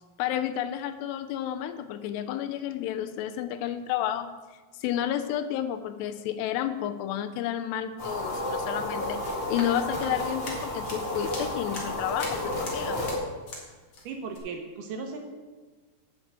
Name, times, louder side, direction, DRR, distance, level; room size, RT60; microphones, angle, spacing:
voice 1, 0.2-4.4 4.8-13.0, left 11 dB, 85° left, 10 dB, 2.5 m, -31 dB
sound 1, 8.0-13.2, left 1 dB, 35° left, 2.3 m, -32 dB
sound 2, 9.5-13.7 13.9-14.4, left 2 dB, 60° left, 1.3 m, -42 dB
voice 2, 14.0-15.2, right 4 dB, 75° right, 3 dB, 2.5 m, -36 dB
9.9 x 5.1 x 7.9 m, 1.3 s
omnidirectional pair, 5.3 m